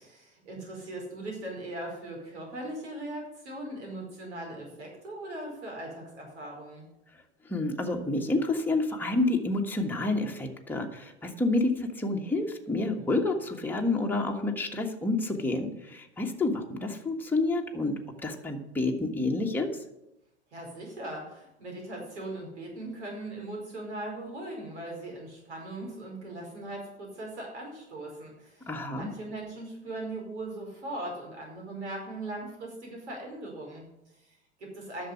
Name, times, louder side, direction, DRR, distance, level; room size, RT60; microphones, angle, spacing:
voice 1, 0.0-6.8 20.5-35.1, right 1 dB, 75° right, 0 dB, 4.9 m, -39 dB
voice 2, 7.5-17.9 18.2-19.7 28.7-29.1, left 2 dB, 5° left, 1 dB, 1.5 m, -29 dB
11.0 x 7.0 x 8.1 m, 0.86 s
figure-of-eight pair, 95°, 34 cm